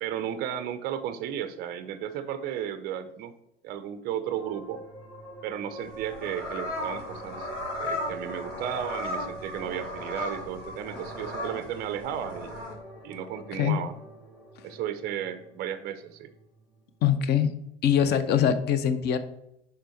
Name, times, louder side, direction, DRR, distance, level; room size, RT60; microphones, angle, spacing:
voice 1, 0.0-3.3 3.6-4.8 5.4-7.5 7.8-12.6 13.0-13.9 14.6-16.3, right 10 dB, 25° right, 11 dB, 0.5 m, -34 dB
sound 1, 4.2-17.1, right 1 dB, ahead, 1.7 m, -45 dB
sound 2, 5.8-12.7, left 1 dB, 85° left, 2.1 m, -36 dB
voice 2, 17.0-17.5 17.8-19.2, left 9 dB, 30° left, 11 dB, 0.7 m, -23 dB
6.8 x 5.0 x 4.4 m, 0.84 s
figure-of-eight pair, 80°, 36 cm